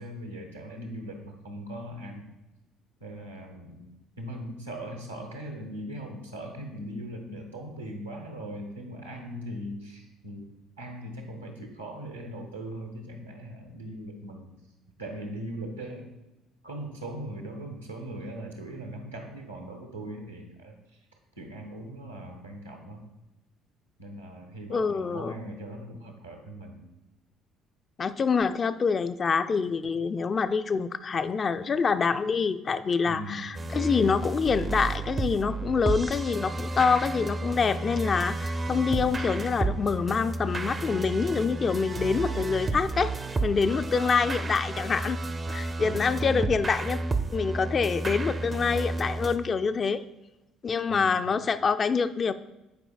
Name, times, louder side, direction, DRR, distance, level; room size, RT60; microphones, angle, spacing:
voice 1, 0.0-2.3 3.0-3.9 4.2-10.5 10.8-14.5 15.0-16.1 16.6-20.7 21.4-23.0 24.0-26.8 33.0-33.6 45.8-46.5 50.9-51.4, right 1 dB, 85° right, 1 dB, 0.9 m, -39 dB
voice 2, 24.7-25.3 28.0-43.2 43.4-45.2 45.5-47.0 47.3-50.0 50.6-52.3, left 5 dB, 35° left, 12 dB, 0.3 m, -26 dB
sound 1, 33.5-49.4, right 2 dB, 30° right, 0.4 m, -32 dB
9.5 x 4.5 x 2.3 m, 0.97 s
figure-of-eight pair, 50°, 0 cm